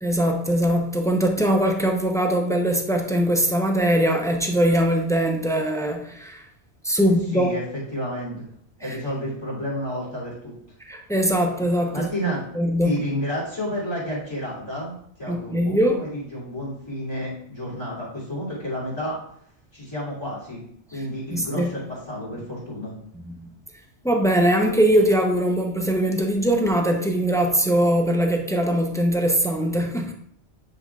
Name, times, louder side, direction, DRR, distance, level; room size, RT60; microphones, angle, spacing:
voice 1, 0.0-6.4 6.8-7.5 8.8-9.0 10.8-13.0 15.3-16.0 21.3-21.7 23.3-23.5 24.0-30.1, right 1 dB, 5° left, 2 dB, 0.4 m, -21 dB
voice 2, 7.0-7.6 7.9-8.4 8.8-10.5 11.9-12.4 12.8-19.2 19.7-20.6 20.9-22.9, equal, 20° left, -6 dB, 2.9 m, -31 dB
9.8 x 5.3 x 2.3 m, 0.68 s
omnidirectional pair, 1.2 m